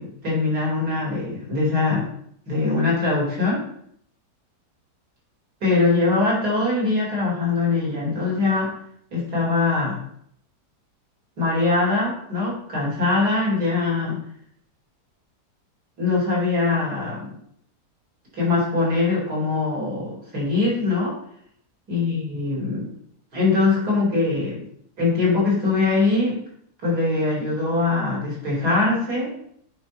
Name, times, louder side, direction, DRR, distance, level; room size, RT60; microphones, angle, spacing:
voice 1, 0.0-2.1 2.5-3.6 5.6-8.7 9.1-10.0 11.4-14.2 16.0-17.4 18.3-21.2 21.9-22.9 23.3-24.6 25.0-26.4 26.8-29.3, left 3 dB, 70° right, -5 dB, 4.7 m, -22 dB
8.7 x 4.6 x 5.5 m, 0.68 s
omnidirectional pair, 1.8 m